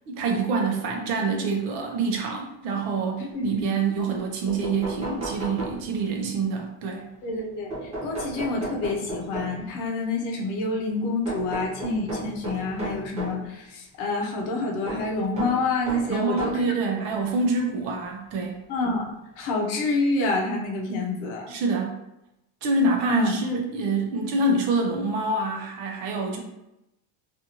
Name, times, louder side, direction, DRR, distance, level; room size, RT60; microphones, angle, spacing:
voice 1, 0.1-7.1 16.1-18.6 21.5-22.0 22.6-26.4, right 3 dB, 65° right, 1 dB, 0.7 m, -26 dB
voice 2, 3.2-3.7 7.2-16.5 17.0-17.1 18.7-21.5 23.1-23.4, left 2 dB, 60° left, 0 dB, 0.7 m, -27 dB
sound 1, 4.5-6.2 7.7-9.8 11.3-13.5 14.9-16.7 17.6-17.7 19.0-19.1 19.4-19.5, right 2 dB, 15° right, 0.4 m, -34 dB
2.6 x 2.5 x 2.8 m, 0.88 s
cardioid pair, 175°, 45 cm